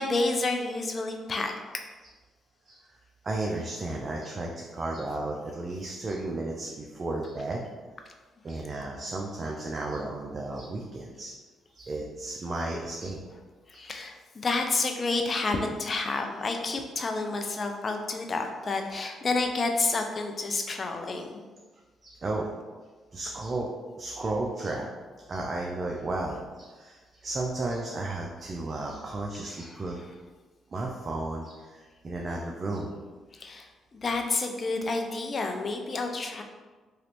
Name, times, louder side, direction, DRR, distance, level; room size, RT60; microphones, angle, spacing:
voice 1, 0.0-1.5 13.7-21.4 29.5-29.8 33.3-36.4, left 3 dB, 40° left, 4 dB, 0.4 m, -30 dB
voice 2, 3.2-7.7 8.4-11.3 11.7-13.2 13.7-13.9 22.0-22.5 23.1-23.7 24.0-24.9 25.3-30.0 30.7-32.9, right 2 dB, 35° right, -1 dB, 0.4 m, -33 dB
3.1 x 2.5 x 2.9 m, 1.3 s
cardioid pair, 90°, 0 cm